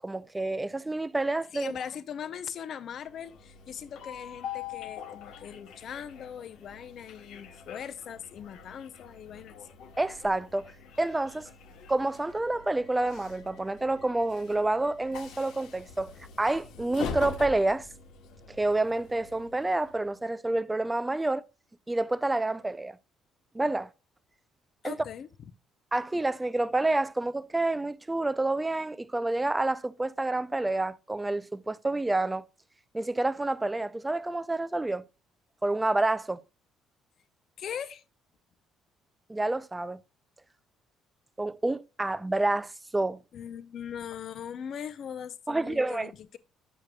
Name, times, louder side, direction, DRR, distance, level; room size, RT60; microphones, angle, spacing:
voice 1, 0.0-1.7 10.0-10.7 11.0-11.5 11.9-17.9 18.6-21.4 21.9-23.0 23.5-23.9 24.8-25.0 25.9-32.4 32.9-35.0 35.6-36.4 39.3-40.0 41.4-43.2 45.5-46.1, right 2 dB, 10° right, 0.3 m, -28 dB
voice 2, 1.5-9.7 24.8-25.3 37.6-38.0 43.3-46.4, left 8 dB, 40° left, 0.6 m, -40 dB
Train, 2.9-20.2, left 6 dB, 70° left, 1.0 m, -44 dB
9.7 x 6.3 x 2.2 m
cardioid pair, 170°, 0 cm